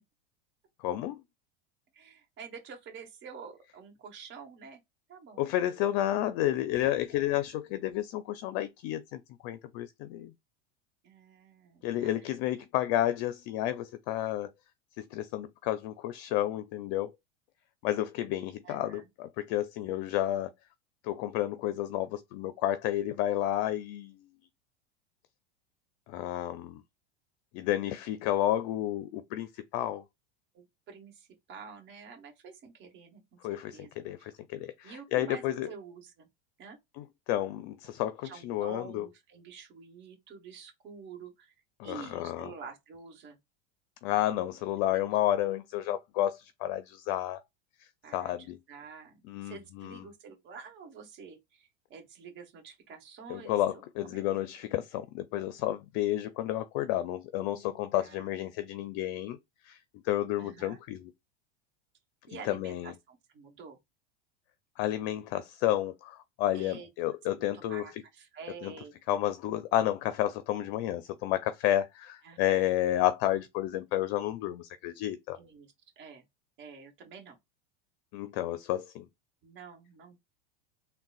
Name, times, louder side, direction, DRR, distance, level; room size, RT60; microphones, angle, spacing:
voice 1, 0.8-1.2 5.4-10.3 11.8-14.5 15.0-17.1 17.8-20.5 21.0-24.2 26.1-26.8 27.5-30.0 33.4-35.7 37.0-39.1 41.8-42.5 44.0-47.4 48.1-48.6 49.3-50.0 53.3-59.4 59.6-59.8 60.0-61.0 62.3-62.9 64.8-67.8 68.6-68.7 69.1-75.4 78.1-79.1, left 13 dB, 55° left, 0.5 m, -31 dB
voice 2, 1.9-4.8 5.1-5.4 7.1-7.4 11.0-12.1 18.6-19.1 30.5-33.9 34.2-34.3 34.8-36.3 36.6-36.8 38.2-41.5 41.8-43.4 44.8-45.0 48.0-54.2 57.9-59.0 60.4-60.8 62.3-63.8 66.5-66.9 67.3-68.9 72.2-72.6 75.3-76.2 76.6-77.4 79.4-80.2, right 5 dB, 40° right, 1.2 m, -48 dB
3.7 x 2.2 x 2.4 m
supercardioid pair, 120°, 31 cm